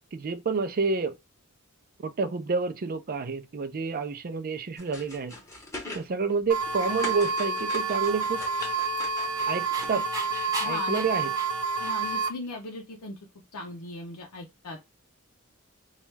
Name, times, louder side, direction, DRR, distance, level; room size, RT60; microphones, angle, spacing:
voice 1, 0.1-1.2 2.0-5.3 5.9-8.4 9.5-10.1 10.6-11.3, right 4 dB, 40° right, 0.5 m, -29 dB
sound 1, 4.8-6.0 6.4-9.9, left 2 dB, 15° left, 0.9 m, -40 dB
sound 2, 6.5-12.3, right 4 dB, 85° right, 0.6 m, -29 dB
Dog, 8.5-12.3, right 2 dB, 15° right, 0.8 m, -39 dB
voice 2, 10.6-11.1 11.8-13.2 13.5-14.9, left 1 dB, 75° left, 0.6 m, -38 dB
3.1 x 2.4 x 3.1 m
head